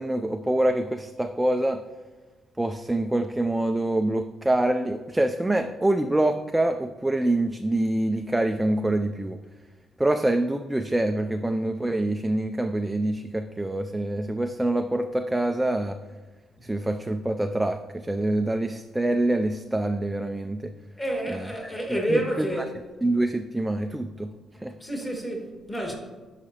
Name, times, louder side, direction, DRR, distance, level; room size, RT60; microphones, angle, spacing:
voice 1, 0.0-1.8 2.6-9.4 10.0-16.0 16.6-20.7 21.3-21.5 22.1-22.5 23.0-24.3 24.6-24.7, right 1 dB, 10° right, 0.4 m, -25 dB
voice 2, 21.0-22.7 24.8-25.9, right 1 dB, 15° left, 2.0 m, -29 dB
11.5 x 4.9 x 2.9 m
cardioid pair, 90°, 0 cm